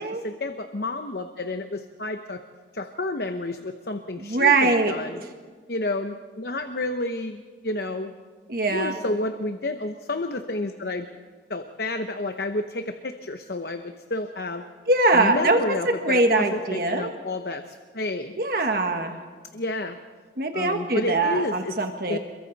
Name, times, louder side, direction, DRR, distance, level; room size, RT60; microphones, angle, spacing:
voice 1, 0.0-2.4 2.7-5.2 5.7-8.2 8.5-11.1 11.5-14.6 15.1-18.4 19.5-20.0 20.5-21.7 22.1-22.2, left 2 dB, 60° left, 7 dB, 0.9 m, -30 dB
voice 2, 4.2-5.0 8.5-9.0 14.9-17.1 18.4-19.2 20.4-22.2, right 2 dB, 55° right, 5 dB, 1.5 m, -22 dB
27.5 x 23.0 x 4.1 m, 1.5 s
head